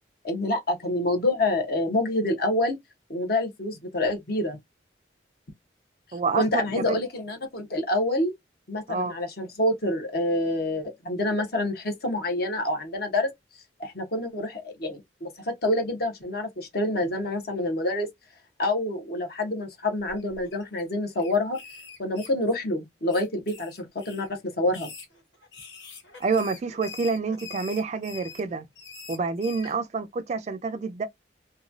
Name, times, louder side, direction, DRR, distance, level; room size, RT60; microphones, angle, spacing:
voice 1, 0.2-2.8 3.1-4.6 6.3-8.3 8.7-13.3 13.8-18.1 18.6-21.6 22.0-24.9, left 1 dB, 55° left, 0.9 m, -27 dB
voice 2, 6.1-7.0 8.9-9.1 26.2-28.7 29.1-31.1, right 4 dB, 35° right, 0.3 m, -28 dB
sound 1, 20.1-20.8 21.1-22.7 23.1-24.3 24.7-29.7, left 5 dB, 85° left, 1.7 m, -44 dB
3.0 x 2.3 x 2.5 m
head